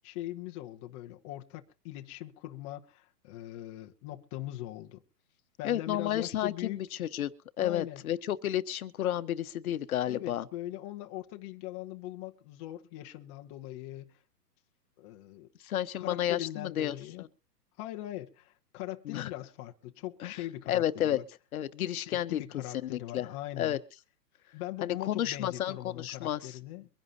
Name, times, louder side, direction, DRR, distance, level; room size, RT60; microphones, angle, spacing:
voice 1, 0.0-5.0 5.6-6.8 7.6-8.0 10.1-14.1 15.0-15.5 16.0-17.3 17.8-21.2 22.0-23.8 24.5-26.9, left 15 dB, 20° left, 0.8 m, -41 dB
voice 2, 5.6-10.5 15.6-17.3 19.1-19.3 20.2-20.4 20.7-21.2 21.5-22.4 22.8-23.3 23.6-23.8 24.8-26.6, left 11 dB, 60° left, 1.0 m, -31 dB
23.5 x 10.5 x 2.7 m
hypercardioid pair, 155°, 49 cm